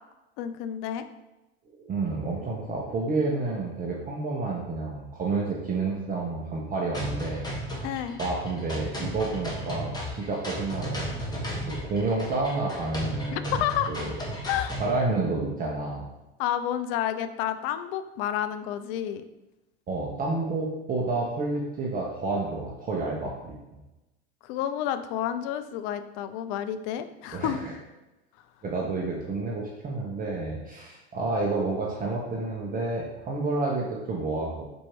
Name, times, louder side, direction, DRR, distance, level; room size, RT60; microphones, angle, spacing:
voice 1, 0.4-1.0 7.8-8.2 13.3-13.9 14.5-14.8 16.4-19.2 24.4-27.6, left 10 dB, 55° left, 11 dB, 0.4 m, -30 dB
voice 2, 1.8-7.5 7.7-7.9 8.2-13.6 13.9-14.1 14.8-16.1 19.9-23.6 27.3-27.7 28.6-34.7, right 3 dB, 25° right, -2 dB, 0.8 m, -30 dB
sound 1, 6.9-14.9, equal, 10° left, 1.2 m, -35 dB
4.3 x 2.7 x 4.5 m, 1.0 s
hypercardioid pair, 90°, 31 cm